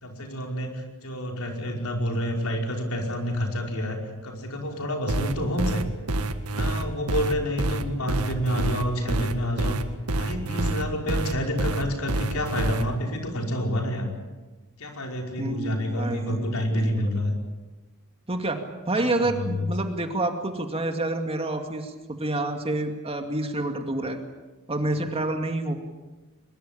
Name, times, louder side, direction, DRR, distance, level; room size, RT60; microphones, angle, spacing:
voice 1, 0.0-5.9 6.5-9.8 10.1-14.1 14.8-17.3 19.0-19.7, equal, 70° left, 2 dB, 5.2 m, -28 dB
sound 1, 5.1-12.8, right 2 dB, 90° right, 1.8 m, -27 dB
voice 2, 15.4-17.2 18.3-18.6 18.9-24.2 24.7-25.7, right 2 dB, 25° right, 5 dB, 2.4 m, -28 dB
23.0 x 22.0 x 8.8 m, 1.2 s
head